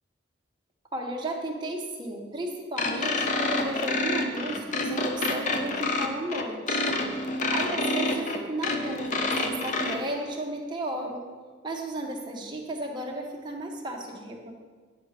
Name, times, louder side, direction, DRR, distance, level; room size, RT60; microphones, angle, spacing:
voice 1, 0.9-6.9 7.5-11.2 11.6-14.5, right 1 dB, 25° right, 0 dB, 0.8 m, -34 dB
sound 1, 2.8-10.0, left 2 dB, 40° left, 0.5 m, -28 dB
9.1 x 4.7 x 3.3 m, 1.5 s
head